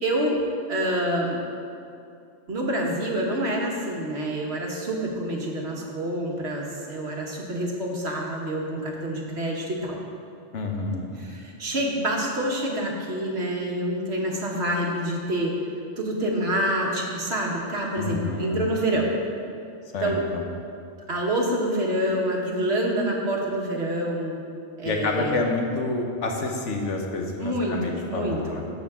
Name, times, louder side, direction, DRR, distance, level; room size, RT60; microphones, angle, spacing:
voice 1, 0.0-1.4 2.5-10.0 11.2-15.5 16.0-19.1 20.0-20.2 21.1-24.4 24.8-25.4 27.4-28.6, right 1 dB, 65° right, -1 dB, 1.6 m, -27 dB
voice 2, 10.5-11.1 18.0-18.7 19.9-20.4 24.8-28.6, left 3 dB, 90° left, 2 dB, 1.3 m, -28 dB
13.5 x 6.4 x 3.6 m, 2.5 s
omnidirectional pair, 1.2 m